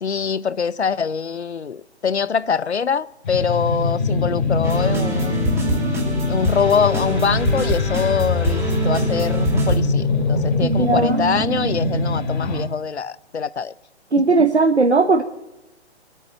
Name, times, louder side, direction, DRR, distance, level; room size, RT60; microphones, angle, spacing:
voice 1, 0.0-5.4 6.3-13.7 14.2-14.3, left 6 dB, 80° left, 0.7 m, -24 dB
sound 1, 3.2-12.6, left 2 dB, 45° left, 3.5 m, -23 dB
sound 2, 4.6-9.8, equal, 10° right, 2.3 m, -24 dB
voice 2, 10.6-11.2 14.1-15.2, right 3 dB, 85° right, 1.1 m, -17 dB
21.0 x 9.0 x 7.7 m
figure-of-eight pair, 135°, 33 cm